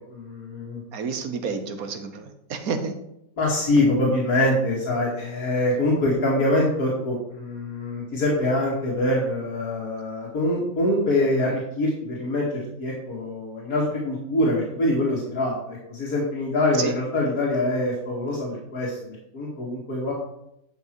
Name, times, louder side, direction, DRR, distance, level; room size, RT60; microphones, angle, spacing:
voice 1, 0.1-0.8 3.4-20.1, left 1 dB, 85° left, -5 dB, 2.5 m, -24 dB
voice 2, 0.9-3.0 16.7-16.9, right 5 dB, 80° right, 8 dB, 1.5 m, -30 dB
10.5 x 5.7 x 4.6 m, 0.81 s
omnidirectional pair, 1.5 m